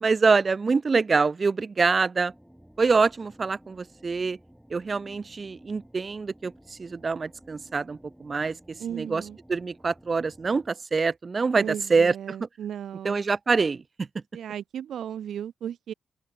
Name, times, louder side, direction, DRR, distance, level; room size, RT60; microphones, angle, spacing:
voice 1, 0.0-2.3 2.8-4.4 4.7-9.2 9.5-12.5 13.0-14.1, right 4 dB, 40° right, 0.9 m, -25 dB
sound 1, 2.3-10.7, equal, 5° right, 4.3 m, -54 dB
voice 2, 8.8-9.4 11.5-13.2 14.3-15.9, right 9 dB, 80° right, 0.5 m, -35 dB
open air
cardioid pair, 80°, 0 cm